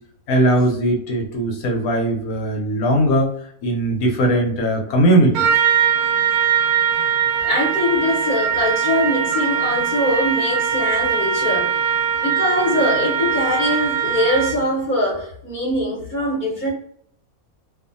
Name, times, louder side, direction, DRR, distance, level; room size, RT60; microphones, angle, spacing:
voice 1, 0.3-5.5, right 1 dB, 80° left, 1 dB, 1.2 m, -19 dB
Trumpet, 5.3-14.7, right 8 dB, 85° right, 1.1 m, -21 dB
voice 2, 7.4-16.7, left 1 dB, 35° left, -5 dB, 1.1 m, -22 dB
2.6 x 2.4 x 2.5 m, 0.65 s
omnidirectional pair, 1.5 m